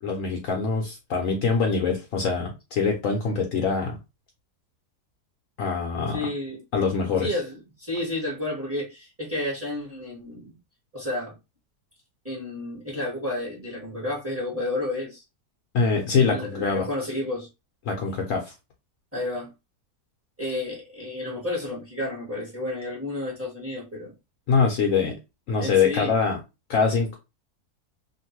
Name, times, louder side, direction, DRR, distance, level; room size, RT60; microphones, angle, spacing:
voice 1, 0.0-4.0 5.6-6.3 6.7-7.4 15.7-16.9 17.9-18.5 24.5-25.2 25.5-26.4 26.7-27.1, left 5 dB, 65° left, 0.9 m, -24 dB
voice 2, 6.1-6.6 7.2-10.6 10.9-11.3 12.2-15.2 16.3-17.5 19.1-19.5 20.4-24.1 25.6-26.2, left 2 dB, 10° right, 1.4 m, -31 dB
2.9 x 2.6 x 2.8 m
omnidirectional pair, 1.7 m